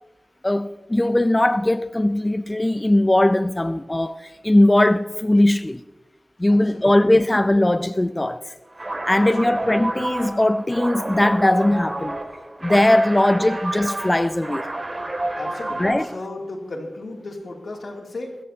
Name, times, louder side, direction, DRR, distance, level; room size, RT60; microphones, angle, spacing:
voice 1, 0.4-5.8 6.4-8.5 9.1-12.2 12.6-14.7 15.8-16.1, left 1 dB, 20° left, 0.4 m, -19 dB
voice 2, 6.5-7.0 9.4-9.6 15.4-18.4, left 2 dB, 80° left, 2.7 m, -35 dB
sound 1, 8.7-16.2, right 2 dB, 35° right, 2.3 m, -30 dB
24.0 x 13.5 x 2.8 m
wide cardioid pair, 100°, 0 cm